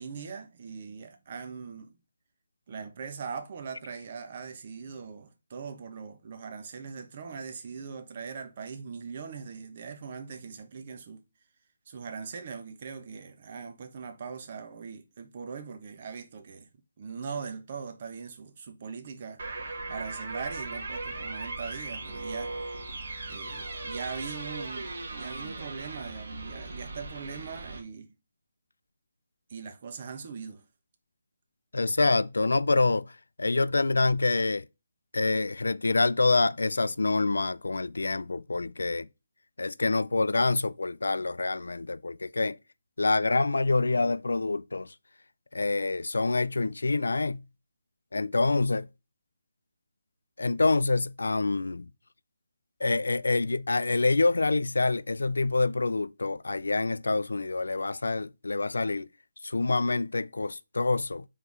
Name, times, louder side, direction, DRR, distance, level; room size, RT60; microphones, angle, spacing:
voice 1, 0.0-2.0 2.7-11.2 11.9-16.7 17.0-22.5 23.3-28.1 29.5-30.6, right 5 dB, 40° right, 1.1 m, -40 dB
sound 1, 19.4-27.8, right 2 dB, 65° right, 1.9 m, -38 dB
voice 2, 31.7-34.7 35.1-39.1 39.6-42.6 43.0-44.9 45.5-47.4 48.1-48.9 50.4-51.9 52.8-59.1 59.4-61.2, left 3 dB, 90° left, 0.3 m, -26 dB
4.7 x 4.0 x 5.3 m
hypercardioid pair, 165°, 0 cm